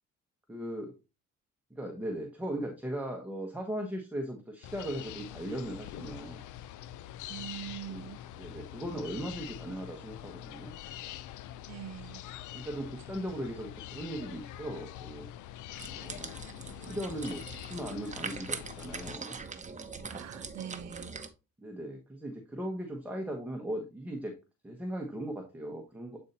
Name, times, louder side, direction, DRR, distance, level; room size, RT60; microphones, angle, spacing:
voice 1, 0.5-0.9 1.7-6.5 7.9-8.1 8.4-10.7 12.5-15.3 16.0-16.4 16.7-19.4 21.6-24.3 24.6-26.2, right 1 dB, 5° right, 1.2 m, -38 dB
sound 1, 4.6-19.2, left 12 dB, 75° left, 0.5 m, -45 dB
voice 2, 7.3-8.2 11.7-12.2 20.1-21.1, right 11 dB, 60° right, 0.6 m, -43 dB
sound 2, 15.7-21.3, right 4 dB, 25° right, 0.9 m, -42 dB
8.5 x 4.3 x 2.6 m
cardioid pair, 90°, 30 cm